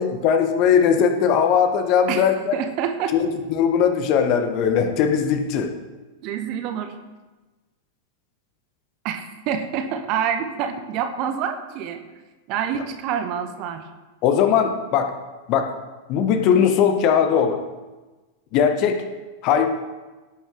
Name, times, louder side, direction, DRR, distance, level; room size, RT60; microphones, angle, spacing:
voice 1, 0.0-2.6 3.1-5.7 14.2-15.1 15.5-15.8 16.1-17.6 18.5-19.1 19.4-19.7, left 7 dB, 40° left, 6 dB, 1.6 m, -19 dB
voice 2, 2.1-3.3 6.2-6.9 9.0-12.0 12.5-13.8, right 8 dB, 40° right, 7 dB, 1.4 m, -27 dB
17.0 x 9.4 x 3.9 m, 1.2 s
figure-of-eight pair, 90°, 0 cm